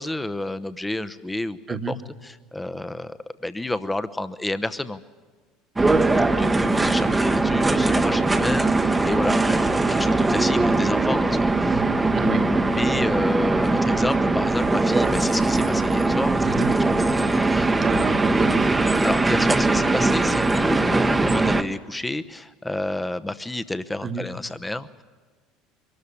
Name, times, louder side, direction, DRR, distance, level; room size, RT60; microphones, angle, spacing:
voice 1, 0.0-5.0 6.3-11.8 12.1-16.5 17.1-17.7 19.0-25.0, left 2 dB, 10° left, 12 dB, 0.9 m, -30 dB
sound 1, 5.8-21.6, right 2 dB, 15° right, 1.0 m, -21 dB
voice 2, 11.7-12.5 16.4-16.7 17.8-18.7 24.0-24.2, right 5 dB, 35° right, 8 dB, 1.4 m, -28 dB
23.0 x 13.0 x 9.9 m, 1.4 s
hypercardioid pair, 70°, 0 cm